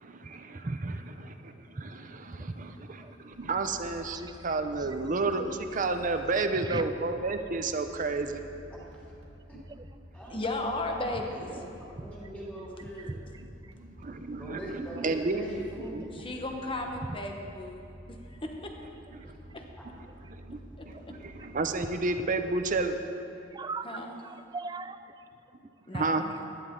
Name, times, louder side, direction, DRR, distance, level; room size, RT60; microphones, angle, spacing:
voice 1, 0.0-8.4 13.4-13.5 13.7-16.0 19.2-19.4 20.3-23.0 25.9-26.2, right 3 dB, 45° right, 7 dB, 0.7 m, -32 dB
voice 2, 0.6-1.0 2.8-3.1 4.1-4.4 4.8-4.9 6.6-6.9 9.7-9.8 13.1-13.2 23.5-25.0 25.9-26.0, right 3 dB, 20° right, 12 dB, 0.3 m, -37 dB
sound 1, 3.3-22.7, equal, 80° right, 1.9 m, -50 dB
voice 3, 8.7-9.0 9.5-9.6 10.1-10.8 11.2-13.2 14.3-16.1 19.2-19.3 19.8-19.9, right 1 dB, 10° left, -7 dB, 2.9 m, -43 dB
voice 4, 10.3-11.5 16.2-18.7 19.5-19.6 20.8-20.9 23.8-24.2 25.9-26.3, left 2 dB, 30° left, 2 dB, 1.1 m, -35 dB
15.5 x 11.5 x 3.8 m, 2.7 s
head